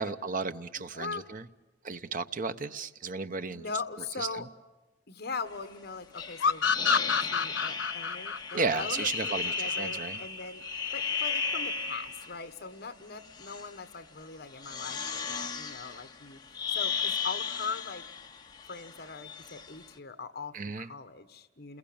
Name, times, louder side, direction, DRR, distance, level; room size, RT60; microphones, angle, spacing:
voice 1, 0.0-1.5 1.8-3.7 4.2-4.4 8.5-10.2 20.5-20.9, right 4 dB, 45° right, 0.9 m, -34 dB
voice 2, 0.9-1.2 3.5-4.4 5.1-10.6 10.9-16.4 16.7-18.0 18.7-21.8, left 4 dB, 60° left, 1.5 m, -40 dB
sound 1, 6.2-12.4 13.2-13.8 14.5-19.8, left 5 dB, 25° left, 1.9 m, -35 dB
sound 2, 6.4-9.8, left 6 dB, 90° left, 0.9 m, -28 dB
28.5 x 21.5 x 8.8 m
head